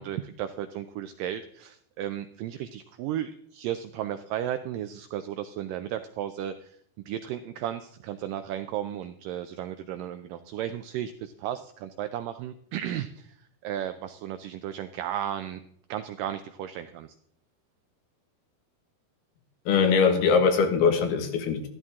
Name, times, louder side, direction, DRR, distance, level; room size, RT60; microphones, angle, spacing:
voice 1, 0.0-6.8 7.1-15.6 15.9-17.2, right 11 dB, 85° right, 10 dB, 1.9 m, -34 dB
voice 2, 19.7-21.7, left 5 dB, 80° left, 5 dB, 3.6 m, -22 dB
13.5 x 12.5 x 3.6 m, 0.67 s
omnidirectional pair, 4.5 m